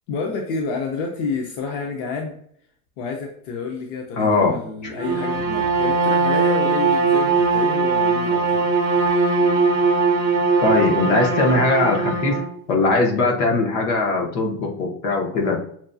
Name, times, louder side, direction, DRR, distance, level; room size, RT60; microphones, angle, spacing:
voice 1, 0.1-2.4 3.0-8.7, left 4 dB, 55° left, 2 dB, 0.7 m, -29 dB
voice 2, 4.1-4.6 4.8-4.9 10.6-12.4 12.7-15.6, left 3 dB, 75° left, 1 dB, 1.2 m, -20 dB
Bowed string instrument, 4.9-12.5, right 4 dB, 10° right, 0.4 m, -20 dB
5.9 x 2.3 x 2.6 m, 0.66 s
cardioid pair, 175°, 37 cm